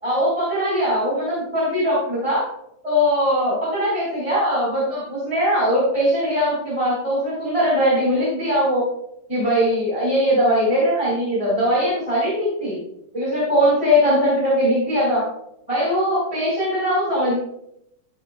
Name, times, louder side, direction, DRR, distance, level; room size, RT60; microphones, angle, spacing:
voice 1, 0.0-2.4 2.8-8.8 9.3-12.8 13.1-15.3 15.7-17.4, equal, 10° right, -9 dB, 4.4 m, -20 dB
16.0 x 8.7 x 2.4 m, 0.78 s
omnidirectional pair, 3.9 m